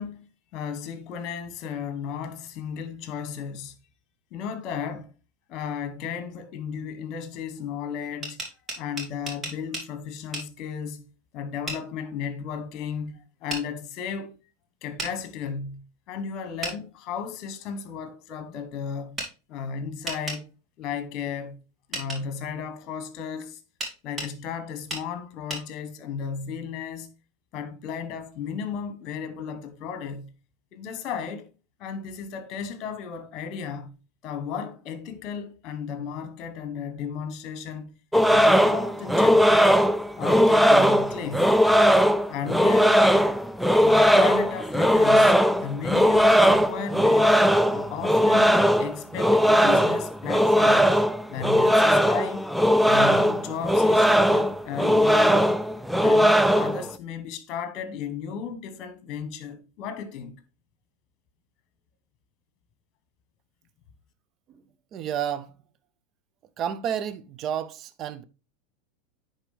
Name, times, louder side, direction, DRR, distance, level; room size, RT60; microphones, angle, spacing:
voice 1, 0.0-3.7 4.3-5.1 5.5-8.4 8.8-11.0 11.3-14.4 14.8-19.2 19.5-20.5 20.8-21.6 21.9-23.6 24.0-27.1 27.5-30.3 30.7-31.5 31.8-33.9 34.2-37.9 38.3-39.8 40.1-41.6 42.3-43.0 43.8-47.4 47.7-50.9 51.3-52.4 52.8-55.6 56.0-60.4, left 6 dB, 45° left, 1.3 m, -34 dB
sound 1, 8.0-9.9 10.3-10.5 11.7-11.8 13.5-13.6 15.0-15.1 16.6-16.8 19.2-19.3 20.1-20.4 21.9-22.2 23.8-24.3 24.9-25.1 25.5-25.6, right 2 dB, 25° right, 2.9 m, -33 dB
sound 2, 38.1-56.9, equal, ahead, 0.4 m, -19 dB
voice 2, 64.9-65.5 66.6-68.2, right 9 dB, 40° right, 0.6 m, -30 dB
9.8 x 4.0 x 3.4 m
hypercardioid pair, 95°, 0 cm